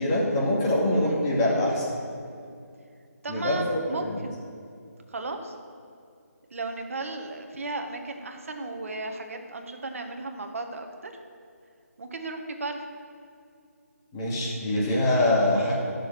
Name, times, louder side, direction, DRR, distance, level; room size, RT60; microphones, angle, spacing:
voice 1, 0.0-1.9 3.3-4.2 14.1-15.7, left 1 dB, 15° left, -5 dB, 2.5 m, -24 dB
voice 2, 0.9-1.2 3.2-4.3 5.1-5.5 6.5-11.1 12.0-12.8, right 2 dB, 55° right, 5 dB, 1.4 m, -35 dB
14.0 x 6.6 x 6.1 m, 2.4 s
figure-of-eight pair, 160°, 9 cm